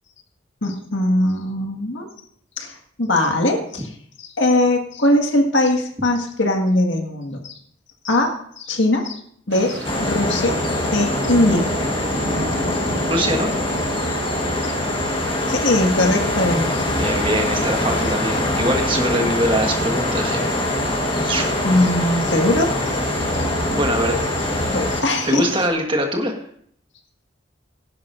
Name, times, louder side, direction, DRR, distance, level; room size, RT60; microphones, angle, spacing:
voice 1, 0.6-2.1 2.6-3.9 4.4-7.4 8.0-9.2 9.5-10.6 10.9-11.7 14.6-14.7 15.5-16.9 21.6-22.7 24.7-25.5, left 1 dB, 75° left, 3 dB, 1.8 m, -20 dB
sound 1, 9.5-25.7, right 2 dB, 60° right, 1.7 m, -33 dB
sound 2, 9.8-25.0, left 1 dB, 25° left, 1.3 m, -23 dB
voice 2, 13.1-13.5 16.9-20.4 21.2-21.5 23.7-24.1 25.2-26.3, equal, 25° right, 3 dB, 1.5 m, -22 dB
18.0 x 11.0 x 2.6 m, 0.64 s
head